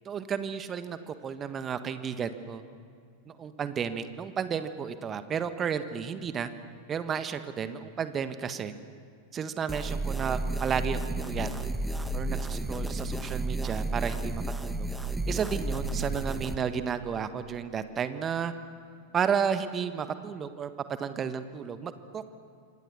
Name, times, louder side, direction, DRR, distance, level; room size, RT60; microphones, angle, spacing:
voice 1, 0.0-2.6 3.3-6.5 6.9-8.7 9.3-11.5 12.1-14.9 15.3-18.5 19.1-20.7 21.0-22.3, right 7 dB, 25° right, 10 dB, 1.4 m, -32 dB
sound 1, 9.7-16.6, right 2 dB, 5° right, 1.5 m, -32 dB
28.0 x 24.5 x 7.1 m, 2.2 s
figure-of-eight pair, 90°, 0 cm